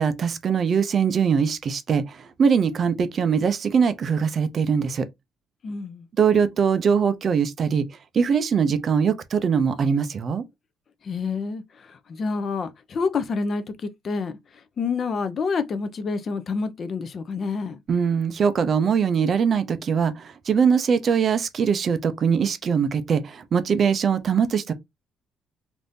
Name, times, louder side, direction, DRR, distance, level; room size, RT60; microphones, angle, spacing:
voice 1, 0.0-5.1 6.2-7.9 8.1-10.4 17.9-24.7, right 6 dB, 35° right, 0.4 m, -22 dB
voice 2, 5.6-6.1 11.0-14.4 14.8-17.8, left 4 dB, 35° left, 0.4 m, -28 dB
3.4 x 2.5 x 2.6 m
cardioid pair, 165°, 0 cm